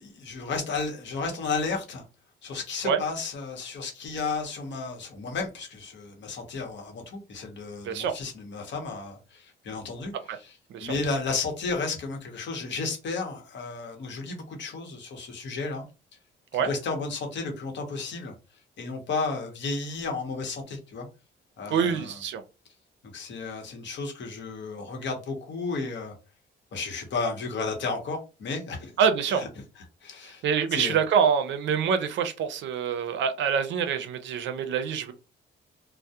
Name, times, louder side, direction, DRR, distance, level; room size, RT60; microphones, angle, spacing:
voice 1, 0.0-2.0 2.4-10.6 10.8-15.8 16.5-18.3 18.8-21.1 21.6-22.2 23.1-26.1 26.7-28.9 29.3-29.5 29.8-30.4 30.7-31.0, left 4 dB, 65° left, 0.9 m, -33 dB
voice 2, 21.7-22.4 29.0-29.4 30.4-35.1, right 7 dB, 70° right, 0.5 m, -25 dB
2.2 x 2.0 x 2.7 m
cardioid pair, 90°, 20 cm